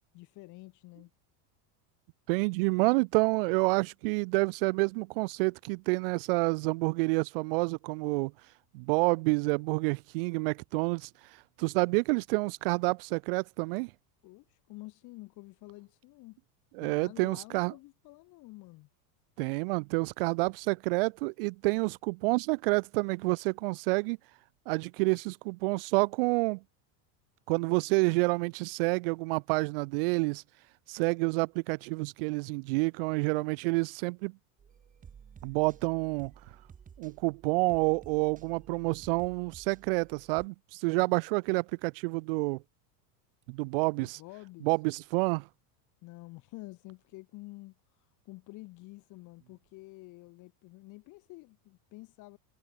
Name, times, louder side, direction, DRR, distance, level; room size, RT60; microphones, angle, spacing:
voice 1, 0.1-1.1 14.2-16.4 16.8-18.9 40.9-41.2 44.0-44.7 46.0-52.4, left 21 dB, 40° left, 4.2 m, -49 dB
voice 2, 2.3-8.3 8.7-11.1 11.6-13.9 16.8-17.7 19.4-24.2 24.7-26.6 27.5-30.4 30.9-34.3 35.4-36.3 37.0-42.6 43.5-44.2 44.6-45.4, right 27 dB, 40° right, 0.4 m, -28 dB
sound 1, 34.6-40.5, right 7 dB, 15° right, 5.1 m, -54 dB
supercardioid pair, 180°, 47 cm